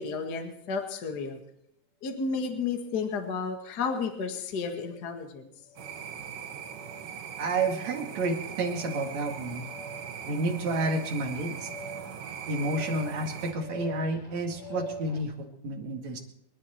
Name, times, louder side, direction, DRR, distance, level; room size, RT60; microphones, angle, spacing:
voice 1, 0.0-1.4 2.0-5.5, left 5 dB, 35° left, 4 dB, 1.9 m, -32 dB
sound 1, 4.6-5.0 5.6-6.0 6.6-7.0 7.6-8.0 8.6-15.2, equal, 35° right, 5.4 m, -45 dB
sound 2, 5.8-13.5, right 8 dB, 90° right, 3.4 m, -40 dB
voice 2, 7.4-9.6 10.3-11.7 12.5-16.2, right 2 dB, 60° right, 2 dB, 3.4 m, -30 dB
29.0 x 10.5 x 4.5 m, 0.77 s
omnidirectional pair, 3.7 m